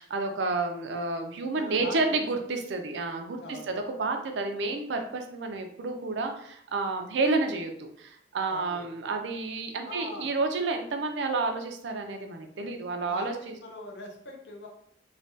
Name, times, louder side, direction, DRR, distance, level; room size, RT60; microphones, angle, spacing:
voice 1, 0.0-13.5, right 3 dB, 70° right, 5 dB, 0.4 m, -30 dB
voice 2, 1.5-2.2 3.4-3.7 8.5-8.9 9.8-10.3 13.1-14.7, left 2 dB, 70° left, 2 dB, 0.6 m, -42 dB
3.2 x 2.2 x 2.6 m, 0.66 s
head